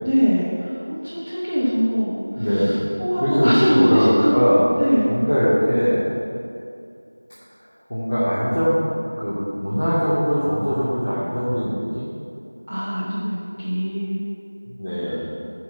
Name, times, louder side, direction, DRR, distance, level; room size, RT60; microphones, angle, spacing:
voice 1, 0.0-4.3 4.8-5.1 12.7-14.2, equal, 20° right, -11 dB, 1.0 m, -22 dB
voice 2, 2.3-2.8 3.2-4.6 5.1-6.0 7.9-8.8 9.2-12.1 14.6-15.3, equal, 5° left, -20 dB, 0.8 m, -21 dB
8.5 x 4.7 x 5.7 m, 2.5 s
figure-of-eight pair, 180°, 0 cm